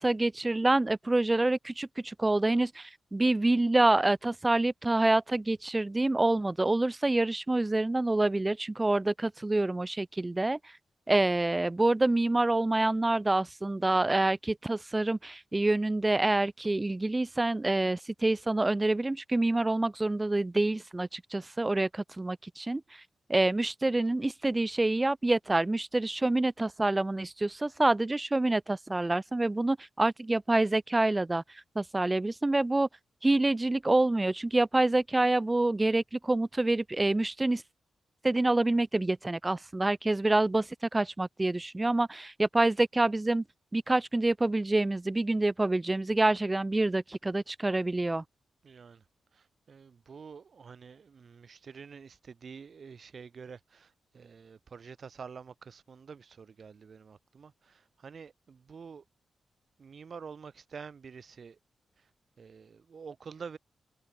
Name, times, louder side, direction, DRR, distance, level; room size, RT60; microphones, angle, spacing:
voice 1, 0.0-10.6 11.1-22.8 23.3-31.4 31.8-32.9 33.2-37.6 38.2-43.4 43.7-48.2, right 2 dB, 15° right, 0.6 m, -27 dB
voice 2, 48.6-49.0 49.3-59.0 59.8-61.6 62.0-62.1 62.4-63.6, right 6 dB, 45° right, 5.0 m, -48 dB
wide cardioid pair, 145°, 0 cm